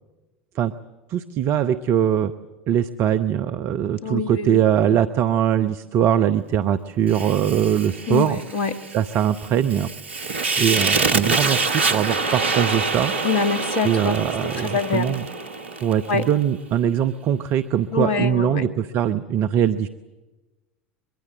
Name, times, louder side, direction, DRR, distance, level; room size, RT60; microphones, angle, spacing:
voice 1, 1.1-2.3 2.7-8.4 8.9-9.9 10.2-13.1 13.8-15.3 15.8-19.9, right 9 dB, 45° right, 11 dB, 0.8 m, -22 dB
voice 2, 4.0-4.6 8.1-8.8 13.2-14.2 14.6-15.2 16.1-16.2 17.9-18.7, left 5 dB, 65° left, 9 dB, 1.8 m, -24 dB
Fire, 7.1-16.3, right 4 dB, 75° right, 1.3 m, -26 dB
23.5 x 23.0 x 7.5 m, 1.1 s
figure-of-eight pair, 75°, 6 cm